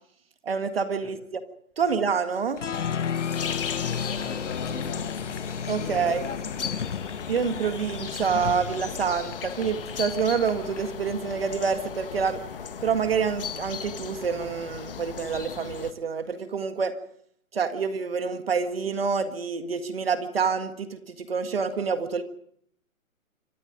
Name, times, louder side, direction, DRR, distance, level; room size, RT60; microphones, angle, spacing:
voice 1, 0.4-1.4 1.8-2.6 5.7-6.2 7.3-12.4 12.8-17.0 17.5-22.2, right 6 dB, 45° right, 1.9 m, -27 dB
Applause, 2.6-11.0, left 7 dB, 60° left, 1.2 m, -33 dB
sound 1, 3.4-15.9, left 7 dB, 40° left, 1.8 m, -37 dB
voice 2, 4.1-5.5 5.8-6.8, left 5 dB, 10° left, 2.6 m, -40 dB
26.5 x 24.5 x 5.2 m
hypercardioid pair, 175°, 41 cm